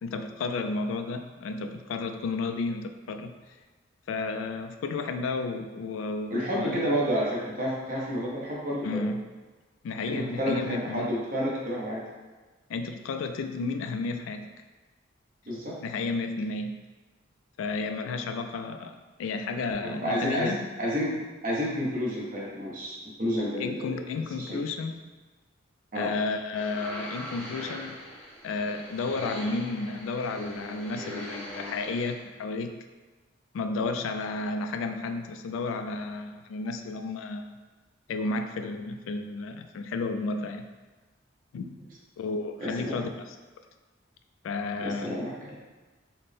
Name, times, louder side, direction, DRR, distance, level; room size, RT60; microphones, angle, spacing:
voice 1, 0.0-3.3 4.1-6.9 8.8-9.3 9.8-11.1 12.7-14.5 15.8-16.8 17.6-20.7 23.6-25.1 26.0-28.0 28.4-32.7 33.5-37.6 38.1-40.7 41.5-41.8 42.2-43.4 44.4-45.2, left 3 dB, 85° left, 9 dB, 0.3 m, -32 dB
voice 2, 6.3-9.1 10.1-12.1 15.5-15.8 19.8-24.1 24.3-24.6 25.9-26.1 42.6-43.1 44.8-45.6, equal, 45° right, -4 dB, 0.9 m, -30 dB
sound 1, 26.5-32.1, equal, 5° left, 0.7 m, -41 dB
4.1 x 2.1 x 3.4 m, 1.3 s
head